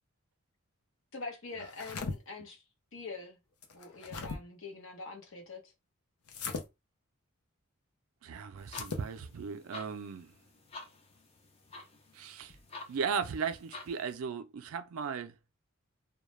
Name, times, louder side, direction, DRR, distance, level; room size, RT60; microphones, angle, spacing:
voice 1, 1.1-2.6 2.9-3.4 3.7-5.7, left 3 dB, 60° left, 0.8 m, -44 dB
sound 1, 1.6-2.2 3.6-4.4 6.3-6.7 8.6-9.1, left 4 dB, 85° left, 0.5 m, -38 dB
voice 2, 8.2-10.3 12.1-12.6 12.9-15.3, right 6 dB, 75° right, 0.4 m, -36 dB
sound 2, 8.6-14.2, left 3 dB, 25° left, 0.4 m, -50 dB
2.3 x 2.1 x 3.0 m
head